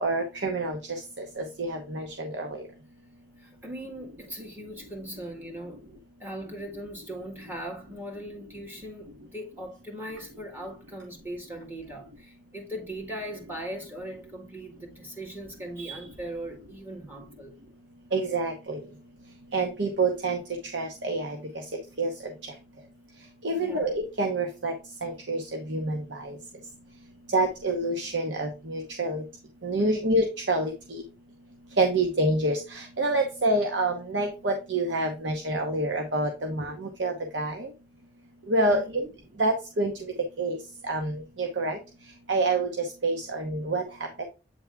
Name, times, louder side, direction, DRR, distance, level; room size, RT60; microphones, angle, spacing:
voice 1, 0.0-0.8 1.4-2.5 18.1-18.8 19.5-20.4 20.7-21.4 22.0-22.1 23.4-23.9 24.2-24.7 25.0-25.4 25.7-26.0 27.3-29.2 29.6-30.7 31.8-36.7 37.0-37.7 38.5-38.8 39.4-39.9 40.4-40.6 40.9-41.1 41.4-41.8 42.3-42.7 43.0-43.8 44.2-44.3, right 2 dB, 85° right, 1.0 m, -27 dB
voice 2, 3.4-5.8 6.2-17.5 23.6-23.9 38.7-39.1, right 1 dB, 10° right, 1.9 m, -39 dB
8.6 x 3.4 x 3.5 m
head